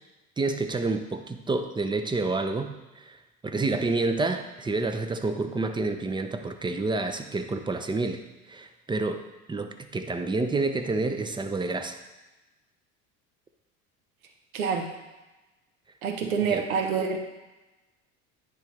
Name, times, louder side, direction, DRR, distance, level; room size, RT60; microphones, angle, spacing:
voice 1, 0.4-3.2 3.4-9.2 9.5-12.0 16.5-16.6, right 3 dB, 10° right, 8 dB, 0.6 m, -29 dB
voice 2, 14.5-14.9 16.0-17.2, right 6 dB, 85° right, 4 dB, 1.0 m, -27 dB
10.0 x 3.8 x 3.2 m, 1.1 s
hypercardioid pair, 75°, 41 cm